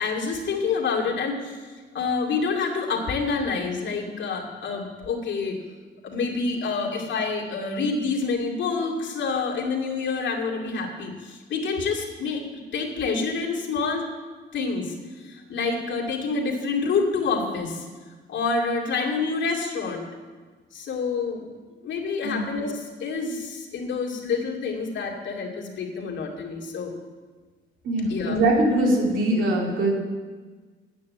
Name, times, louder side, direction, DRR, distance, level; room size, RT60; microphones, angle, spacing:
voice 1, 0.0-1.7 1.9-5.6 6.0-12.4 12.7-14.1 14.5-17.9 18.3-20.1 20.7-21.5 21.8-26.9 28.1-28.4, left 4 dB, 70° left, 0 dB, 2.3 m, -27 dB
voice 2, 27.8-29.9, right 1 dB, 80° right, -2 dB, 3.2 m, -22 dB
9.6 x 8.7 x 7.5 m, 1.4 s
cardioid pair, 90°, 20 cm